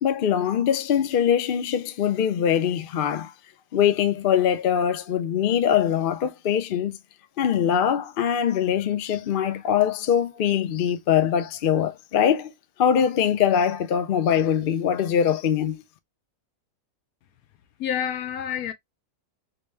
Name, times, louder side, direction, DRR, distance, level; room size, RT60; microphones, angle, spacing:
voice 1, 0.0-3.3 3.7-7.0 7.4-12.5 12.8-15.8, left 8 dB, 60° left, 0.5 m, -22 dB
voice 2, 17.8-18.7, left 9 dB, 75° left, 1.1 m, -28 dB
3.1 x 3.1 x 3.2 m
omnidirectional pair, 1.6 m